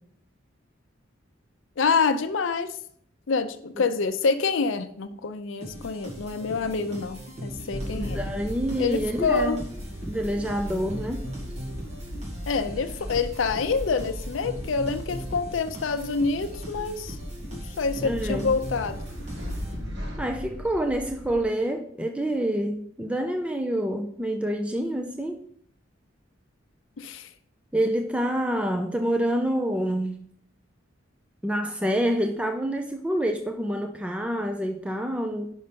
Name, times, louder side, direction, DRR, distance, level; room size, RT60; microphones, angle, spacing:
voice 1, 1.8-2.8 3.3-8.2 8.8-9.6 12.5-17.2 17.5-19.0 27.0-27.3, left 4 dB, 75° left, 10 dB, 0.5 m, -27 dB
sound 1, 5.6-20.2, right 1 dB, 35° right, 2.0 m, -39 dB
sound 2, 7.7-21.4, equal, 60° right, 1.3 m, -38 dB
voice 2, 7.9-9.6 10.1-11.3 18.0-18.5 20.2-25.4 27.7-30.2 31.4-35.5, right 1 dB, 5° right, 4 dB, 0.4 m, -27 dB
5.6 x 5.4 x 5.1 m, 0.64 s
head